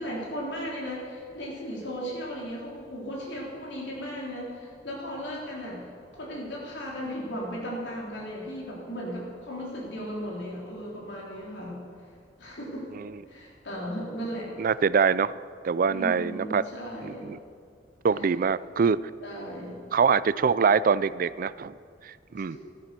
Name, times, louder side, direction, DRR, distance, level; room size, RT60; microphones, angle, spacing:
voice 1, 0.0-5.8 6.1-11.8 12.4-12.9 13.3-14.5 15.9-17.3 19.2-19.8 22.5-22.6, equal, 80° left, -4 dB, 3.6 m, -36 dB
voice 2, 14.6-15.3 15.6-16.6 17.0-17.4 18.0-19.0 19.9-21.8 22.0-22.6, right 6 dB, 50° right, 18 dB, 0.4 m, -24 dB
13.0 x 12.5 x 6.9 m, 2.2 s
head